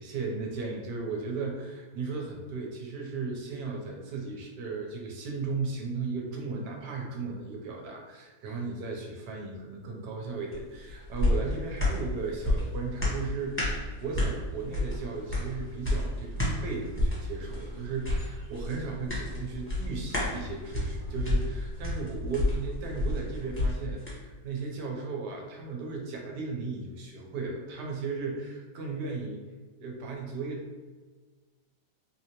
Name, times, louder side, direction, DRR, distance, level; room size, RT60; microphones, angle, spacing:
voice 1, 0.0-29.4 29.8-30.7, right 4 dB, 80° right, 0 dB, 1.3 m, -36 dB
sound 1, 10.5-24.2 24.6-24.7, left 1 dB, 10° left, 0.9 m, -31 dB
3.8 x 2.8 x 2.9 m, 1.4 s
omnidirectional pair, 1.8 m